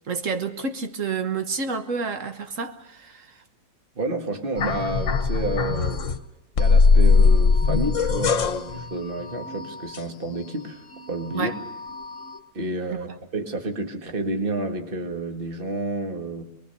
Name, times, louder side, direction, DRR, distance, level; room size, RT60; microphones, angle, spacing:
voice 1, 0.1-3.4 11.3-11.5 12.9-13.0, right 5 dB, 55° right, 1.6 m, -29 dB
voice 2, 4.0-6.1 6.6-11.5 12.5-16.4, right 2 dB, 35° right, 2.0 m, -30 dB
sound 1, 4.6-6.2 6.6-10.6 10.9-12.4, left 4 dB, 55° left, 1.3 m, -21 dB
23.0 x 21.5 x 6.8 m
omnidirectional pair, 1.7 m